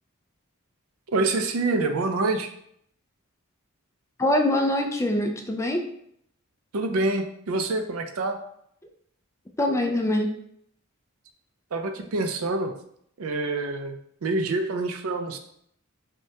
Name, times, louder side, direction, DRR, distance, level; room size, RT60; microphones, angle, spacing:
voice 1, 1.1-2.5 6.7-8.4 11.7-12.7 13.2-15.4, right 2 dB, 75° right, 6 dB, 0.5 m, -26 dB
voice 2, 4.2-5.8 9.6-10.3, left 1 dB, 15° left, 3 dB, 0.4 m, -23 dB
6.2 x 2.3 x 2.8 m, 0.70 s
head